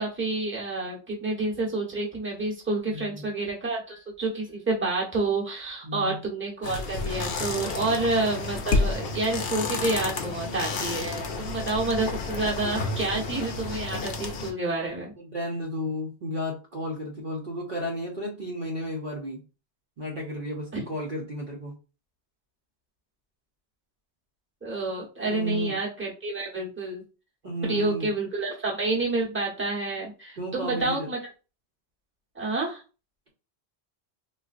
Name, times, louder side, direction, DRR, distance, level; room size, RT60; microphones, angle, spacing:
voice 1, 0.0-15.1 20.7-20.8 24.6-27.0 27.6-31.2 32.3-32.8, right 2 dB, 10° right, -3 dB, 1.0 m, -29 dB
voice 2, 2.9-3.2 5.8-6.2 7.7-7.9 15.2-19.4 20.0-21.8 25.3-25.8 27.4-28.1 30.4-31.1, equal, 50° right, -2 dB, 0.9 m, -33 dB
sound 1, 6.6-14.5, left 3 dB, 65° left, 0.8 m, -30 dB
3.7 x 2.4 x 2.5 m, 0.32 s
omnidirectional pair, 1.1 m